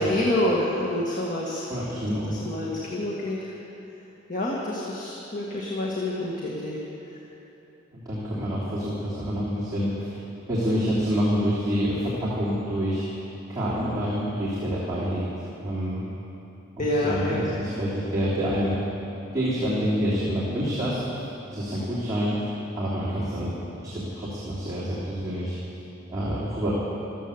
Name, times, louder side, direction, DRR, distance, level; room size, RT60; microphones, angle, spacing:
voice 1, 0.0-1.7 2.3-3.5 4.3-6.8 16.8-17.5, left 1 dB, 40° left, -4 dB, 1.8 m, -27 dB
voice 2, 1.7-2.3 7.9-10.2 10.5-13.0 13.5-15.3 15.6-16.0 17.0-18.7 19.3-21.0 21.5-22.5 22.8-23.5 23.8-25.5 26.1-26.7, equal, 20° right, -10 dB, 3.0 m, -27 dB
15.0 x 13.5 x 7.1 m, 3.0 s
head